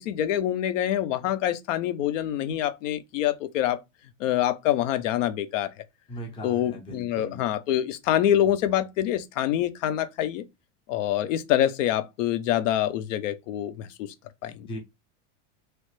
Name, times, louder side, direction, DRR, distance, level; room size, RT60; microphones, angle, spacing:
voice 1, 0.0-3.8 4.2-5.7 6.4-10.4 10.9-14.1 14.4-14.7, left 11 dB, 80° left, 0.7 m, -26 dB
voice 2, 6.1-7.4 14.7-14.8, equal, 15° left, 0.6 m, -38 dB
3.1 x 2.4 x 3.1 m
supercardioid pair, 180°, 37 cm